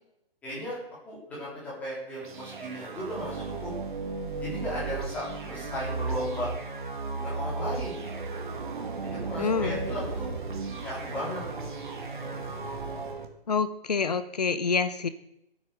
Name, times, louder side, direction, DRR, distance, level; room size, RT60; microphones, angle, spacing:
voice 1, 0.4-0.8 1.0-3.7 4.4-6.5 7.1-8.3 9.0-10.3 10.8-11.4, equal, 5° left, -6 dB, 3.6 m, -36 dB
sound 1, 2.2-13.3, right 4 dB, 55° right, 2.5 m, -35 dB
voice 2, 9.4-9.8 13.5-15.1, left 5 dB, 40° left, 13 dB, 0.8 m, -27 dB
15.5 x 9.0 x 6.7 m, 0.81 s
hypercardioid pair, 175°, 30 cm